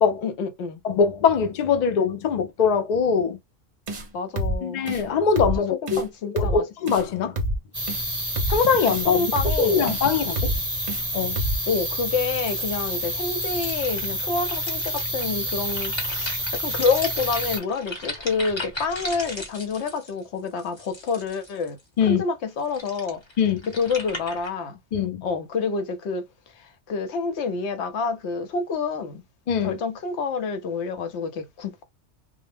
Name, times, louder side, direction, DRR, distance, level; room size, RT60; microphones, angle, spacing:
voice 1, 0.2-0.8 4.1-4.9 5.8-6.6 9.0-9.8 11.7-21.8 22.1-23.2 23.7-24.8 25.2-26.3 26.6-29.2 29.6-31.8, left 4 dB, 75° left, 0.9 m, -28 dB
voice 2, 0.8-3.4 4.6-6.0 6.3-7.4 8.5-9.3 9.6-10.5 11.1-11.4 22.0-22.2 23.4-23.6 24.9-25.2 29.5-29.8, left 6 dB, 55° left, 0.5 m, -22 dB
sound 1, 3.9-4.1 4.4-4.6 4.9-5.0 5.4-5.6 5.9-6.0 6.4-6.6 6.9-7.0 7.4-7.6 7.9-8.0 8.4-8.6 8.9-9.0 9.4-9.6 9.9-10.0 10.4-10.6 10.9-11.0 11.4-11.6, equal, 45° right, 0.7 m, -26 dB
sound 2, 7.7-17.6, right 1 dB, 10° right, 1.1 m, -29 dB
sound 3, 12.2-21.8 22.5-24.5, left 2 dB, 25° left, 0.8 m, -37 dB
2.1 x 2.1 x 3.3 m
omnidirectional pair, 1.2 m